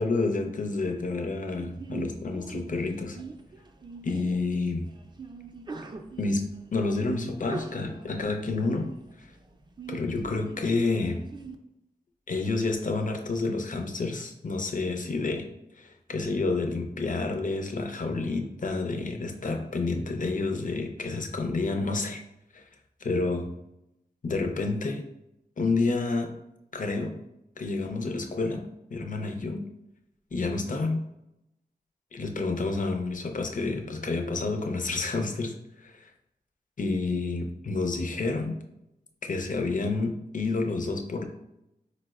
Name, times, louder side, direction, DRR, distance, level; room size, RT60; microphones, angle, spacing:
voice 1, 0.0-3.2 4.0-4.9 6.2-9.3 9.9-11.2 12.3-15.5 15.8-22.2 22.5-22.7 23.0-23.5 24.2-25.0 25.6-26.4 26.7-27.2 27.6-29.7 30.3-31.1 32.1-36.1 36.8-38.6 39.2-41.2, left 3 dB, 50° left, 5 dB, 0.5 m, -29 dB
Sneeze, 1.6-11.5, right 4 dB, 25° right, 0.3 m, -43 dB
4.0 x 2.0 x 2.3 m, 0.84 s
cardioid pair, 50°, 17 cm